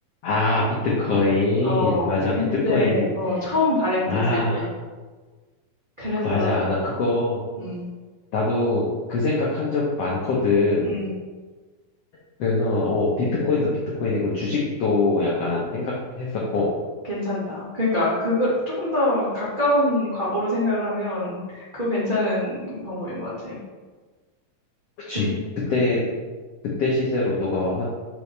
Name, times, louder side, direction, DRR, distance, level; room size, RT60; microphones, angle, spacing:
voice 1, 0.2-3.1 4.1-4.6 6.2-7.4 8.3-8.8 9.1-10.9 12.4-13.7 14.0-16.7 25.1-25.3 25.7-26.0 26.6-27.8, left 3 dB, 90° left, -4 dB, 1.3 m, -23 dB
voice 2, 1.6-4.7 6.0-6.7 7.6-7.9 10.8-11.1 17.0-23.5 25.1-25.3, left 1 dB, 80° right, -9 dB, 0.4 m, -25 dB
6.8 x 5.2 x 3.3 m, 1.4 s
omnidirectional pair, 4.2 m